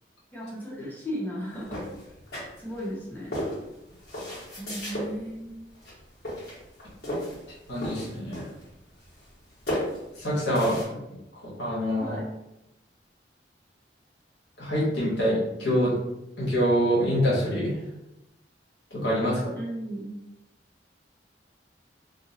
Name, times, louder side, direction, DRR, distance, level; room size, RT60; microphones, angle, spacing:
voice 1, 0.3-1.8 2.6-3.4 4.6-5.7 12.0-12.2 19.5-20.1, equal, 10° left, -6 dB, 0.8 m, -35 dB
sound 1, 1.7-2.9 3.3-5.1 5.7-6.0 6.2-7.4 7.7-8.7 9.0-9.4 9.7-10.8, equal, 55° left, 1.4 m, -34 dB
voice 2, 7.7-8.5 10.2-11.0 11.4-12.2 14.6-15.9 16.4-17.8 18.9-19.5, equal, 75° left, -6 dB, 1.3 m, -25 dB
2.7 x 2.6 x 2.8 m, 0.90 s
head